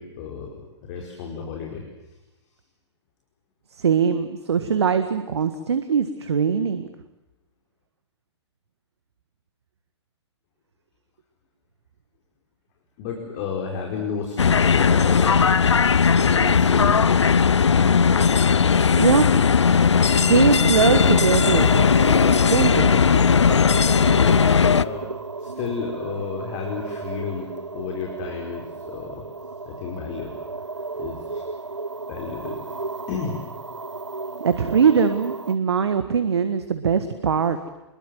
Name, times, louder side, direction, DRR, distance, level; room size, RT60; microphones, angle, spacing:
voice 1, 0.0-1.8 13.0-17.3 24.7-25.1 25.4-29.3 29.7-30.3 31.0-31.4 32.1-32.6 33.1-33.4, left 5 dB, 40° left, 1 dB, 4.9 m, -32 dB
voice 2, 3.8-6.9 19.0-19.3 20.2-21.7 22.1-22.2 22.5-22.9 34.4-37.7, right 6 dB, 65° right, 10 dB, 1.7 m, -21 dB
sound 1, 14.4-24.8, left 6 dB, 75° left, 0.8 m, -17 dB
sound 2, 19.7-35.6, right 3 dB, 85° right, 0.9 m, -33 dB
27.0 x 22.0 x 7.9 m, 1.0 s
figure-of-eight pair, 115°, 15 cm